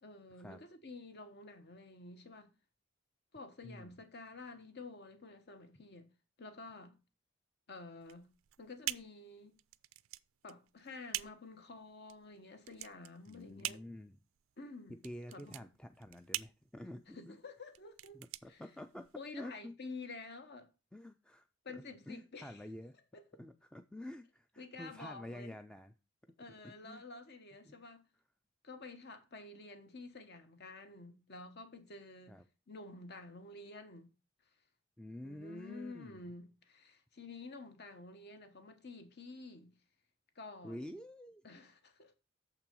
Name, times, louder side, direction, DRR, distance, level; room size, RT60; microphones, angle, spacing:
voice 1, 0.0-2.5 3.3-6.1 6.4-7.0 7.7-8.3 8.6-9.6 10.4-13.8 14.6-15.0 15.3-15.7 17.1-18.6 19.2-20.7 21.6-22.6 23.1-23.4 24.6-25.6 26.4-28.1 28.6-34.1 35.2-39.7 40.3-41.0 41.4-42.1, left 3 dB, 55° left, 1.2 m, -50 dB
sound 1, 8.0-19.3, right 16 dB, 75° right, 0.4 m, -45 dB
voice 2, 13.3-14.2 15.0-17.4 18.1-19.1 19.3-19.7 20.9-21.5 21.7-23.0 23.4-25.9 26.6-27.0 27.6-27.8 32.3-32.4 35.0-36.2 40.6-41.4, left 1 dB, 5° left, 0.4 m, -48 dB
6.8 x 5.9 x 5.3 m
head